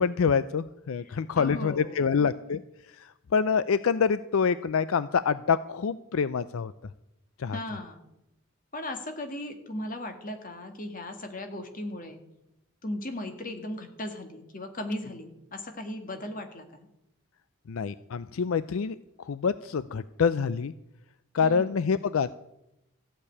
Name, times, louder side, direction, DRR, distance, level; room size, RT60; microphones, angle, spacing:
voice 1, 0.0-2.6 3.0-6.7 7.4-7.6 17.7-19.0 19.3-20.7 21.3-22.3, left 6 dB, 70° left, 15 dB, 0.4 m, -26 dB
voice 2, 1.0-2.3 7.5-8.0 8.7-12.2 12.8-16.9 21.4-21.7, left 1 dB, 40° left, 6 dB, 1.8 m, -37 dB
15.0 x 6.8 x 9.8 m, 0.87 s
head